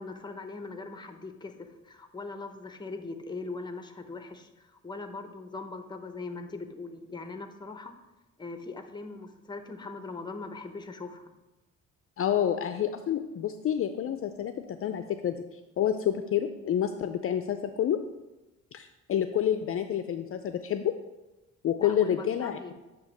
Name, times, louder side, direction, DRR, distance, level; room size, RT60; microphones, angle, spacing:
voice 1, 0.0-7.9 8.4-11.2 21.8-22.7, left 3 dB, 15° left, 7 dB, 0.7 m, -40 dB
voice 2, 12.2-18.0 18.7-20.9 21.6-22.6, left 10 dB, 45° left, 8 dB, 0.4 m, -29 dB
8.1 x 2.9 x 6.2 m, 1.1 s
cardioid pair, 90°, 30 cm